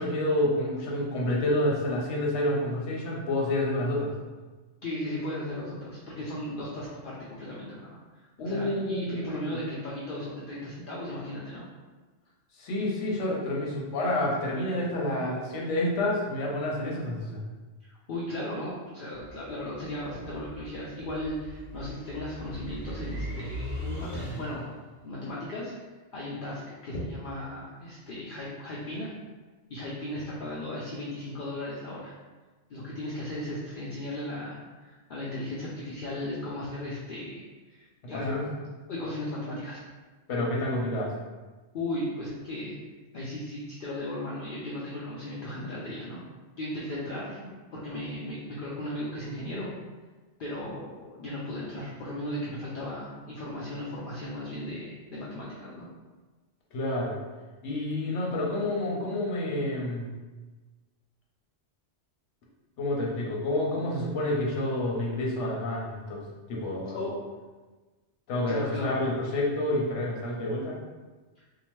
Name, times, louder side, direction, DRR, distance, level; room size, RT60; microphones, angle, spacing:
voice 1, 0.0-4.1 8.4-9.6 12.6-17.4 38.1-38.4 40.3-41.1 56.7-57.1 57.6-60.1 62.8-67.0 68.3-70.8, left 1 dB, 80° left, -3 dB, 1.0 m, -29 dB
voice 2, 4.8-11.7 17.8-23.7 24.0-24.7 25.0-25.7 26.1-29.1 29.7-32.1 32.7-38.5 38.9-39.8 41.7-42.8 43.1-46.2 46.6-49.7 50.4-55.9 66.9-67.2 68.5-69.0, left 1 dB, 60° left, -7 dB, 0.6 m, -36 dB
sound 1, 19.1-24.8, equal, 15° left, 1.1 m, -39 dB
2.8 x 2.1 x 3.0 m, 1.3 s
omnidirectional pair, 1.2 m